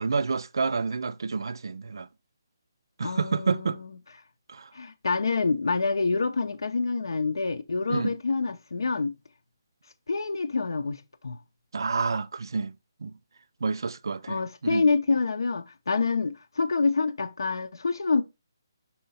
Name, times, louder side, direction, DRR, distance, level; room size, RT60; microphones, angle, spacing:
voice 1, 0.0-2.1 3.0-3.8 4.5-4.7 7.9-8.1 11.7-12.7 13.0-13.1 13.6-14.8, right 4 dB, 80° right, 0.3 m, -29 dB
voice 2, 3.0-3.9 4.7-9.1 10.1-11.4 14.3-18.2, left 4 dB, 85° left, 0.6 m, -27 dB
5.6 x 4.2 x 4.2 m
hypercardioid pair, 165°, 2 cm